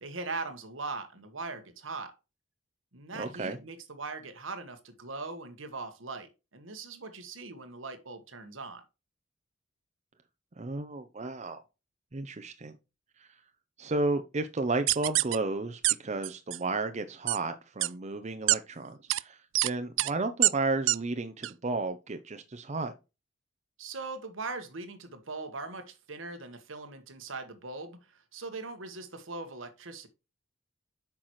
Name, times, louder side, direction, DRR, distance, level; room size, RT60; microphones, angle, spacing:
voice 1, 0.0-2.1 2.9-8.8 23.8-30.1, right 3 dB, 90° right, 1.4 m, -40 dB
voice 2, 3.1-3.6 10.6-11.6 12.1-12.7 13.2-13.3 13.8-22.9, right 3 dB, 35° right, 0.7 m, -33 dB
sound 1, 14.9-15.4 15.8-15.9 16.2-16.6 17.3-17.4 17.8-17.9 18.5-18.6 19.1-19.2 19.6-19.7 20.0-20.1 20.4-20.5 20.9-21.0 21.4-21.5, right 18 dB, 70° right, 0.4 m, -24 dB
8.7 x 6.0 x 3.1 m
head